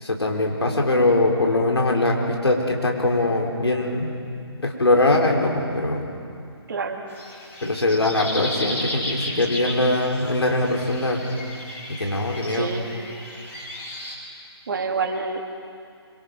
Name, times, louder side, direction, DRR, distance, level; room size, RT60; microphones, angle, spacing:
voice 1, 0.0-4.1 4.6-6.0 7.6-11.2 11.9-12.7, left 2 dB, 70° left, 0 dB, 4.1 m, -22 dB
voice 2, 6.7-7.0 12.5-12.9 14.7-15.4, right 5 dB, 50° right, 2 dB, 2.5 m, -27 dB
sound 1, 7.1-14.1, left 1 dB, 10° left, 3.4 m, -34 dB
25.5 x 24.5 x 5.4 m, 2.4 s
figure-of-eight pair, 140°, 14 cm